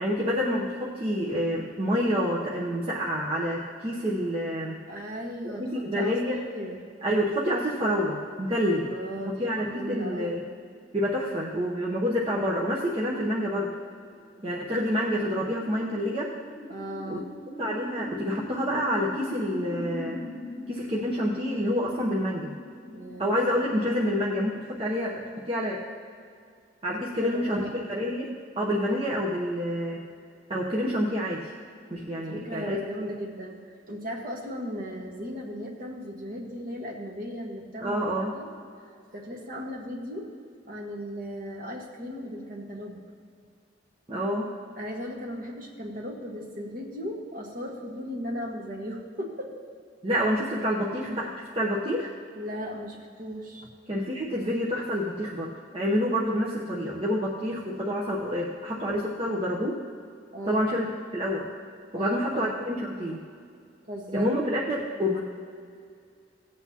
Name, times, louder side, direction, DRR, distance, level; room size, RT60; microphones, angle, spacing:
voice 1, 0.0-4.8 5.4-6.4 7.0-8.9 9.3-10.4 10.9-13.7 14.4-16.3 17.1-17.2 17.6-20.2 20.7-22.5 23.2-25.8 26.8-28.3 28.6-30.0 30.5-31.5 31.9-33.1 37.8-38.4 44.1-44.5 50.0-52.1 53.9-59.8 60.4-60.9 61.1-61.5 61.9-63.2 64.1-65.2, equal, 30° right, -5 dB, 0.9 m, -28 dB
voice 2, 4.9-5.6 5.9-6.8 8.7-10.4 16.7-17.3 22.9-23.3 26.9-27.8 32.2-33.6 33.9-38.0 38.3-38.5 39.1-40.3 40.6-43.0 44.8-49.5 52.3-53.7 60.3-60.6 61.9-62.6 63.9-64.3, equal, 50° right, -1 dB, 1.5 m, -36 dB
sound 1, 14.0-25.8, left 1 dB, 5° left, 0.7 m, -41 dB
17.0 x 8.3 x 2.9 m, 2.2 s
head